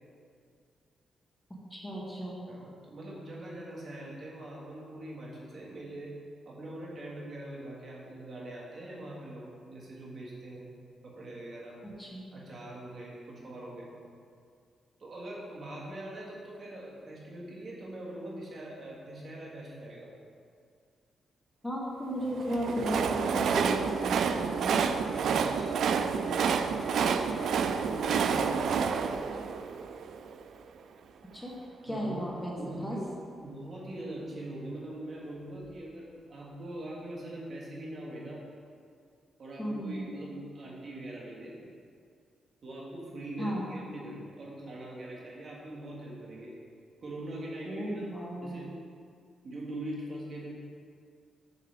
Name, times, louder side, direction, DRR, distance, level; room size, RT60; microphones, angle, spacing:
voice 1, 1.7-2.4 12.0-12.3 21.6-24.8 26.2-26.4 31.3-31.5 31.8-32.6 32.8-33.0 39.6-40.1 43.4-43.7 47.7-48.6, equal, 10° left, -4 dB, 1.1 m, -35 dB
voice 2, 2.5-6.1 6.4-10.7 11.0-11.8 12.3-13.9 15.0-20.1 25.1-25.8 26.9-29.5 31.9-33.0 33.3-38.4 39.4-41.5 42.6-46.5 47.0-48.1 48.4-48.7 49.4-50.5, right 1 dB, 50° right, -5 dB, 1.7 m, -42 dB
Train, 22.3-30.5, right 6 dB, 75° right, 0.3 m, -29 dB
7.2 x 6.5 x 3.4 m, 2.2 s
cardioid pair, 115°, 0 cm